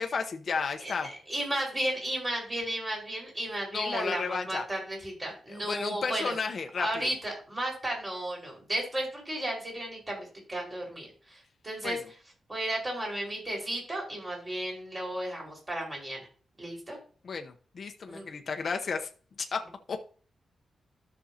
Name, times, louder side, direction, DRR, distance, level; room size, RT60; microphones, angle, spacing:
voice 1, 0.0-1.1 3.7-4.6 5.5-7.1 11.8-12.0 17.2-19.1 19.4-19.6 19.9-20.0, left 5 dB, 45° left, 5 dB, 0.9 m, -33 dB
voice 2, 0.8-6.4 6.8-12.0 12.5-16.3 16.6-17.0 18.1-18.3, right 1 dB, 20° right, -2 dB, 4.7 m, -34 dB
13.0 x 6.3 x 2.8 m, 0.40 s
wide cardioid pair, 140°, 0 cm